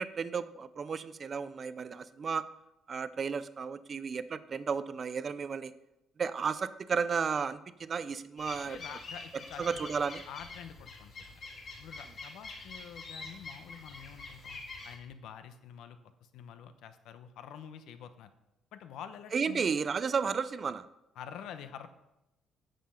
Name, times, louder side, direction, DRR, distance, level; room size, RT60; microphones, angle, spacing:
voice 1, 0.0-2.4 2.9-5.7 6.2-9.0 9.6-10.2 19.3-20.9, right 6 dB, 30° right, 14 dB, 0.4 m, -33 dB
sound 1, 8.4-15.0, left 3 dB, 35° left, 2.0 m, -46 dB
voice 2, 8.6-9.9 10.3-11.2 11.8-14.6 14.8-16.0 16.3-18.3 18.7-19.7 21.2-21.9, left 8 dB, 75° left, 10 dB, 0.8 m, -47 dB
9.3 x 6.7 x 5.6 m, 0.90 s
cardioid pair, 170°, 0 cm